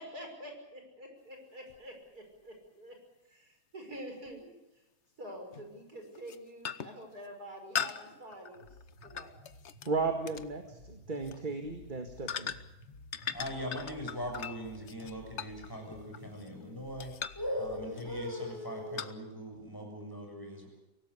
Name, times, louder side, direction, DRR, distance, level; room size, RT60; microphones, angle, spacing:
voice 1, 0.0-3.0 3.3-4.5 5.2-8.7 9.0-9.4, equal, 50° right, 3 dB, 6.1 m, -47 dB
sound 1, 1.7-1.8 4.3-4.4 5.5-5.7 6.1-6.4 6.6-7.0 7.7-9.9 10.3-10.5 11.1-11.4 12.3-12.8 13.1-16.6 17.0-17.5 18.0-18.3 19.0-19.1, left 7 dB, 45° left, 1.0 m, -39 dB
sound 2, 8.5-18.4, left 1 dB, 70° left, 3.5 m, -54 dB
voice 2, 9.9-12.6, right 4 dB, 25° right, 5 dB, 1.9 m, -35 dB
voice 3, 13.3-20.7, equal, 10° left, 2 dB, 7.2 m, -39 dB
24.5 x 18.0 x 8.3 m, 0.98 s
omnidirectional pair, 2.1 m